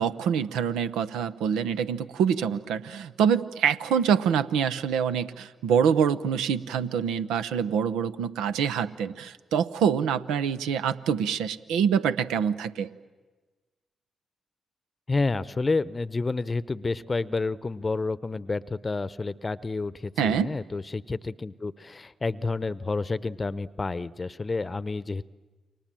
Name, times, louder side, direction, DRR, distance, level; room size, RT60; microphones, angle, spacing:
voice 1, 0.0-12.9 20.2-20.5, right 7 dB, 80° right, 12 dB, 0.8 m, -25 dB
voice 2, 15.1-25.3, left 3 dB, 35° left, 17 dB, 0.8 m, -29 dB
29.0 x 24.0 x 7.6 m, 1.3 s
hypercardioid pair, 40°, 0 cm